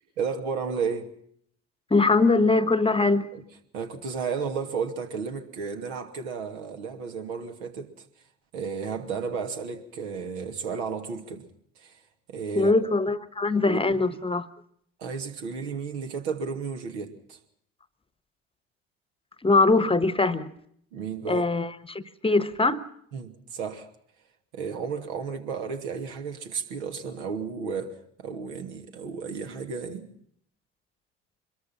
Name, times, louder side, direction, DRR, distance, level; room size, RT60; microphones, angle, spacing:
voice 1, 0.2-1.1 3.3-3.4 3.7-8.1 8.5-11.5 11.8-12.0 12.3-12.7 13.6-14.2 15.0-17.4 20.9-21.5 23.1-23.9 24.5-30.1, right 5 dB, 70° right, 2.8 m, -33 dB
voice 2, 1.9-3.3 12.6-14.5 19.4-20.5 21.3-22.8, left 3 dB, 15° left, 1.3 m, -22 dB
25.0 x 22.5 x 5.9 m
figure-of-eight pair, 55°, 35 cm